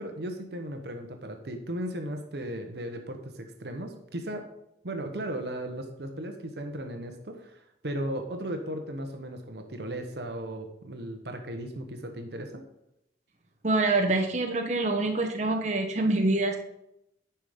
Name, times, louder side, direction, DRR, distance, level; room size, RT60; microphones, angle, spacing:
voice 1, 0.0-4.5 4.8-12.6, right 1 dB, 60° right, 5 dB, 1.0 m, -36 dB
voice 2, 13.6-16.6, right 2 dB, 40° right, 2 dB, 1.0 m, -25 dB
10.0 x 5.8 x 5.0 m, 0.83 s
head